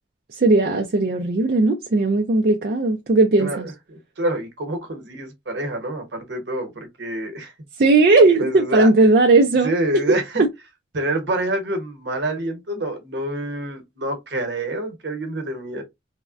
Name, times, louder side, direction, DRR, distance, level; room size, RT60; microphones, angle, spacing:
voice 1, 0.3-3.7 7.8-9.7 10.1-10.2, right 3 dB, 55° right, 0.4 m, -17 dB
voice 2, 3.4-7.5 8.4-8.9 9.6-10.4 10.9-15.8, right 1 dB, 70° right, 1.0 m, -27 dB
3.4 x 2.1 x 2.4 m
head